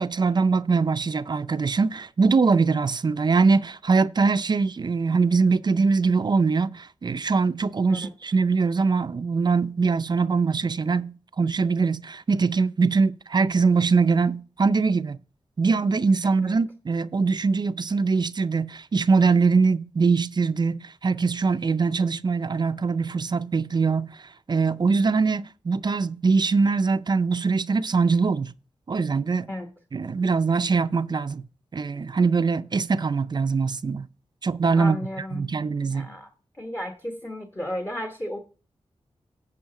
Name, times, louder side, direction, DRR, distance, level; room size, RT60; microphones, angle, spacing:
voice 1, 0.0-15.2 15.6-24.2 24.5-28.5 28.9-29.5 29.9-31.4 31.7-34.1 34.4-35.0 35.3-36.1, right 4 dB, 45° right, 0.4 m, -22 dB
voice 2, 34.8-36.3 36.6-38.4, equal, 20° left, 1.0 m, -34 dB
9.2 x 5.6 x 4.8 m
wide cardioid pair, 90°, 11 cm